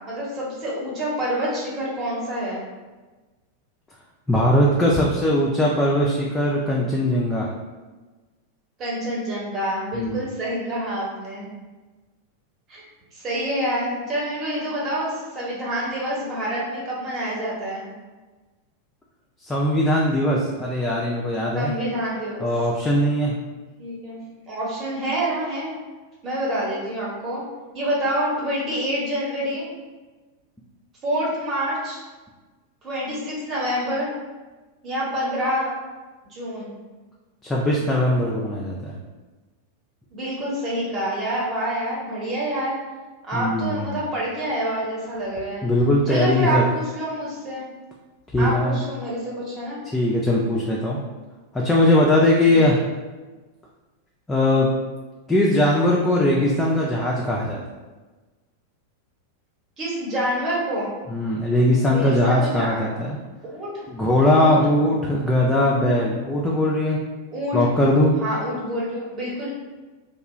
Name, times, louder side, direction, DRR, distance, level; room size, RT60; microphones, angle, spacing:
voice 1, 0.1-2.6 8.8-11.5 12.7-12.8 13.1-17.9 21.5-22.5 23.8-24.2 24.5-25.7 26.2-27.4 27.7-29.7 31.0-32.0 32.8-34.1 34.8-35.7 36.3-36.7 40.1-42.8 43.2-45.7 46.1-47.7 48.4-49.8 52.5-52.7 59.8-60.9 61.9-62.9 63.4-63.8 64.4-64.6 67.3-67.6 68.2-69.5, right 1 dB, 30° right, -5 dB, 0.9 m, -27 dB
voice 2, 4.3-7.5 9.9-10.2 19.4-21.7 22.4-23.3 37.4-38.9 43.3-44.0 45.6-46.6 48.3-48.8 49.9-51.0 51.5-52.8 54.3-54.7 55.3-57.6 61.1-63.2 63.9-67.0 67.5-68.1, left 1 dB, 10° left, -4 dB, 0.3 m, -20 dB
2.4 x 2.2 x 3.0 m, 1.3 s
figure-of-eight pair, 90°, 0 cm